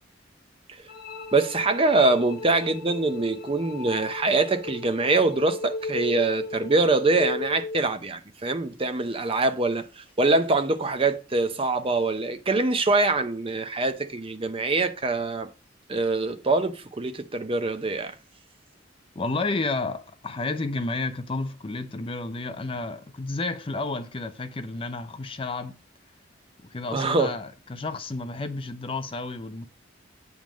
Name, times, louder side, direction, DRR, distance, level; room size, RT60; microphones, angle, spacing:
sound 1, 0.9-7.9, left 3 dB, 55° left, 1.1 m, -36 dB
voice 1, 1.3-15.5 15.9-18.1 26.9-27.3, right 3 dB, 30° right, 0.7 m, -24 dB
voice 2, 19.2-25.8 26.6-29.7, left 3 dB, 30° left, 0.5 m, -31 dB
8.9 x 3.6 x 6.2 m
head